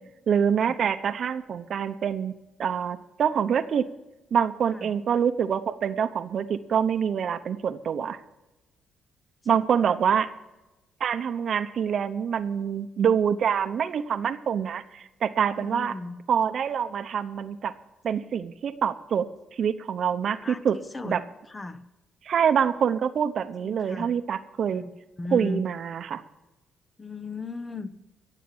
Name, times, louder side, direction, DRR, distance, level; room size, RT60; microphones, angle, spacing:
voice 1, 0.3-2.3 2.6-3.8 4.3-8.2 9.5-10.3 11.0-15.9 16.3-17.7 18.0-19.3 19.5-20.8 21.0-21.2 22.2-24.8 25.3-26.2, right 7 dB, 60° right, 11 dB, 0.9 m, -25 dB
voice 2, 9.4-9.9 15.6-16.2 20.3-20.6 20.9-21.8 23.6-24.1 24.7-24.9 25.2-25.6 27.0-27.9, left 3 dB, 20° left, 12 dB, 1.0 m, -37 dB
16.5 x 7.4 x 7.4 m, 1.0 s
cardioid pair, 90°, 0 cm